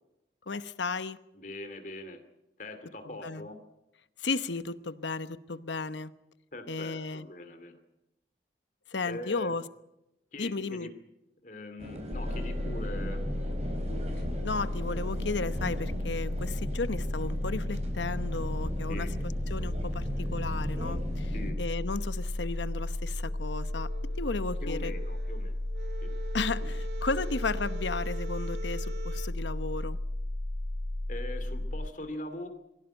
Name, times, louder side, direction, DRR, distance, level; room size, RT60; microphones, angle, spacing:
voice 1, 0.5-1.2 3.0-3.5 4.2-6.1 6.7-7.3 8.9-9.6 10.4-10.9 14.4-19.1 19.5-23.9 24.2-24.9 26.3-30.0, left 3 dB, 90° left, 13 dB, 1.0 m, -34 dB
voice 2, 1.3-2.2 2.6-3.6 6.5-7.8 9.0-9.6 10.3-10.9 11.4-13.2 18.9-19.1 21.3-21.6 24.6-25.6 26.0-26.1 26.6-26.7 31.1-32.5, left 1 dB, 45° left, 7 dB, 2.5 m, -41 dB
sound 1, 11.8-21.5, equal, 35° right, 4.6 m, -38 dB
sound 2, 12.1-31.9, left 1 dB, 70° left, 1.3 m, -34 dB
sound 3, 23.2-29.3, right 3 dB, 65° right, 1.0 m, -45 dB
23.5 x 16.0 x 9.0 m, 0.91 s
head